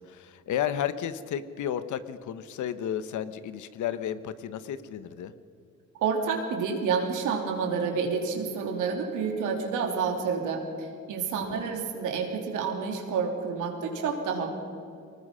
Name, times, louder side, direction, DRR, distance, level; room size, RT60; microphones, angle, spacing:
voice 1, 0.0-5.3 11.5-11.7, left 9 dB, 75° left, 13 dB, 1.1 m, -33 dB
voice 2, 6.0-14.5, right 5 dB, 90° right, 2 dB, 3.2 m, -29 dB
24.5 x 19.5 x 5.6 m, 2.5 s
cardioid pair, 90°, 30 cm